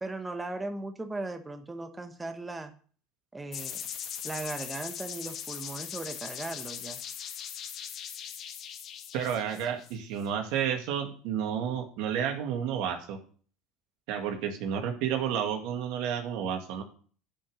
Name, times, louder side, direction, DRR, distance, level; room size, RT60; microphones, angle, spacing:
voice 1, 0.0-2.7 3.3-3.8 4.2-7.0, right 2 dB, 15° right, 7 dB, 1.0 m, -37 dB
sound 1, 3.5-10.2, left 9 dB, 50° left, 1.5 m, -40 dB
voice 2, 9.1-13.2 14.1-16.8, right 8 dB, 70° right, 4 dB, 1.9 m, -31 dB
9.9 x 5.3 x 6.3 m, 0.43 s
supercardioid pair, 105°, 0 cm